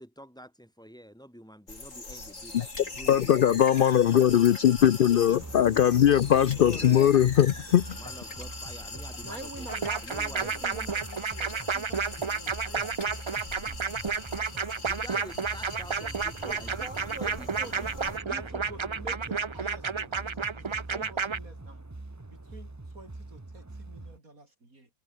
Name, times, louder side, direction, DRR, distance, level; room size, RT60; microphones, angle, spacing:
voice 1, 0.0-3.4 6.5-7.2 7.9-10.6 14.8-17.8, equal, 5° left, 7.9 m, -47 dB
sound 1, 1.7-18.2, left 3 dB, 60° left, 4.6 m, -42 dB
voice 2, 3.1-8.0, left 10 dB, 80° left, 0.4 m, -21 dB
sound 2, 5.4-24.2, right 2 dB, 15° right, 0.9 m, -44 dB
voice 3, 9.2-13.8 16.4-21.9 22.3-24.9, right 2 dB, 70° right, 6.0 m, -47 dB
sound 3, 9.7-21.4, right 5 dB, 45° right, 0.3 m, -31 dB
omnidirectional pair, 1.5 m